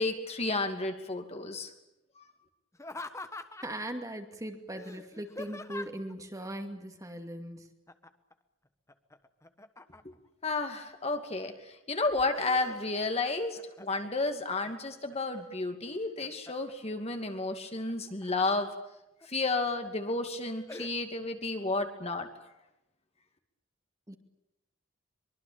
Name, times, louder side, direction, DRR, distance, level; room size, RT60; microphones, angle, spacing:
voice 1, 0.0-1.7 2.2-2.3 10.4-18.7 19.3-22.3, left 3 dB, 30° left, 5 dB, 2.6 m, -32 dB
Laughter, 2.7-3.8 4.8-6.1 7.9-8.3 8.7-10.3 10.8-11.5 11.9-13.2 13.5-14.1 14.6-15.4 15.9-16.7 17.9-18.7 19.2-19.3 19.8-20.1 20.7-20.9, left 2 dB, 15° left, 1.3 m, -45 dB
voice 2, 3.6-7.7 24.1-24.2, right 1 dB, 15° right, 5 dB, 2.4 m, -39 dB
24.0 x 23.5 x 8.9 m, 0.90 s
head